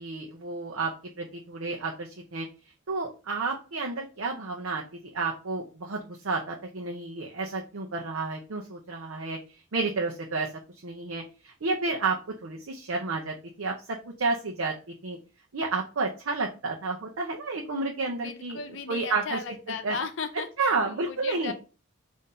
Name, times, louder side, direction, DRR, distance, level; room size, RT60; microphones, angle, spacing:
voice 1, 0.0-2.5 2.9-9.4 9.7-10.5 10.8-14.7 15.0-15.2 15.5-18.6 18.9-19.4 19.7-20.0 20.3-21.5, right 3 dB, 85° right, -1 dB, 0.7 m, -31 dB
voice 2, 18.1-21.5, left 5 dB, 65° left, 8 dB, 0.6 m, -36 dB
4.2 x 2.7 x 3.7 m, 0.33 s
head